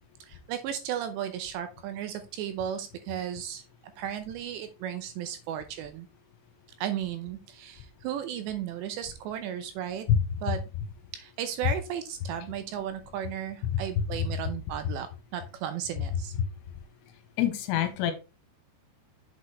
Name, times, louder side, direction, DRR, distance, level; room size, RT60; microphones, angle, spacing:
voice 1, 0.3-3.6 4.0-6.1 6.8-10.1 10.4-10.6 11.1-16.3, right 10 dB, 80° right, 8 dB, 2.7 m, -35 dB
voice 2, 17.4-18.1, left 9 dB, 80° left, 8 dB, 3.1 m, -25 dB
8.1 x 6.4 x 3.1 m, 0.30 s
omnidirectional pair, 5.5 m